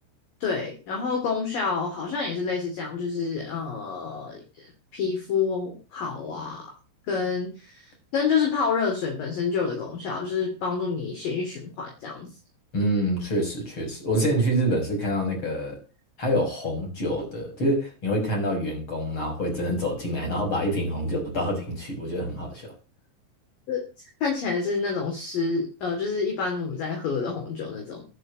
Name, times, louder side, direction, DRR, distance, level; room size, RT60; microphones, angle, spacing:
voice 1, 0.4-6.7 7.1-12.3 23.7-23.8 24.2-28.0, left 5 dB, 50° left, 4.0 m, -28 dB
voice 2, 12.7-15.8 16.2-22.7, equal, 25° left, 6.1 m, -26 dB
11.0 x 6.6 x 8.8 m
omnidirectional pair, 5.7 m